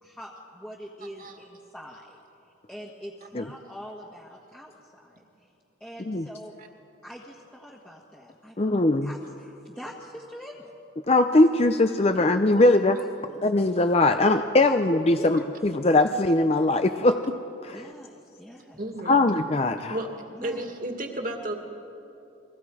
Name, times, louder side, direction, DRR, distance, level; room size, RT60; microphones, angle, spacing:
voice 1, 0.0-2.2 2.7-5.2 5.8-6.5 7.0-8.7 9.0-10.7 12.1-12.2 12.5-12.7 13.0-13.5 14.6-14.7 15.2-15.4 17.7-18.8 20.3-20.6, equal, 5° left, -3 dB, 1.4 m, -44 dB
voice 2, 8.6-9.1 11.1-13.0 13.4-17.4 17.6-17.8 19.1-20.0, left 2 dB, 30° left, 8 dB, 0.5 m, -21 dB
voice 3, 18.8-19.2 19.9-20.1 20.4-21.5, right 1 dB, 45° right, 3 dB, 2.1 m, -32 dB
30.0 x 23.0 x 4.9 m, 2.8 s
head